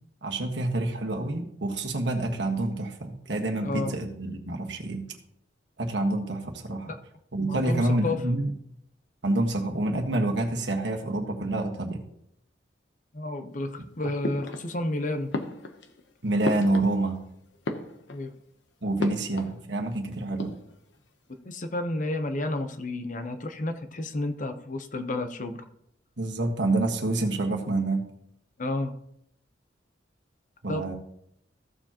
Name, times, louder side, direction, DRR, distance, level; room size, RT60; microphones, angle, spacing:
voice 1, 0.2-5.0 5.8-6.9 7.3-8.5 9.2-12.0 16.2-17.2 18.8-20.5 26.2-28.1 30.6-30.9, right 2 dB, 70° right, 2 dB, 1.5 m, -27 dB
voice 2, 3.6-4.0 6.9-7.0 7.4-8.2 13.1-15.3 18.1-18.3 21.4-25.6 28.6-29.0 30.7-30.9, left 2 dB, 45° left, 8 dB, 0.8 m, -31 dB
sound 1, 14.2-15.0 15.3-17.2 17.5-18.4 19.0-19.6 19.9-20.0 20.2-21.0, left 2 dB, 75° left, 0.9 m, -34 dB
15.0 x 7.1 x 2.9 m, 0.75 s
head